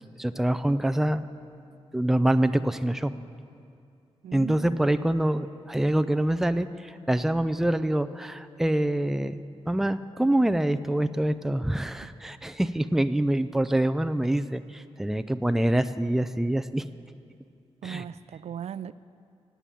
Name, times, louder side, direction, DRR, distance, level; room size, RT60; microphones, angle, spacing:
voice 1, 0.2-1.2 1.9-3.1 4.3-9.4 9.7-16.9 17.8-18.1, right 1 dB, 5° right, 0.4 m, -25 dB
voice 2, 4.2-4.8 12.0-12.1 17.8-18.9, right 9 dB, 90° right, 0.4 m, -38 dB
17.5 x 9.1 x 8.4 m
wide cardioid pair, 170°, 11 cm